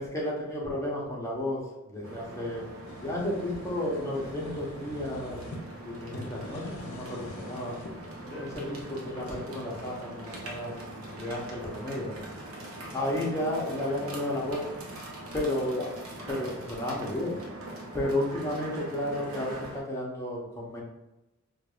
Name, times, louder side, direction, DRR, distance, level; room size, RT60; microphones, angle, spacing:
voice 1, 0.0-2.7 3.0-5.4 5.8-7.8 8.2-10.7 11.0-12.2 12.9-14.7 15.3-15.9 16.3-17.4 17.9-20.8, left 1 dB, 15° left, -4 dB, 0.8 m, -32 dB
sound 1, 2.0-19.8, right 1 dB, 70° right, 0.7 m, -42 dB
sound 2, 2.5-5.6 6.0-8.0, left 1 dB, 80° left, 0.5 m, -44 dB
4.5 x 2.4 x 2.3 m, 0.98 s
head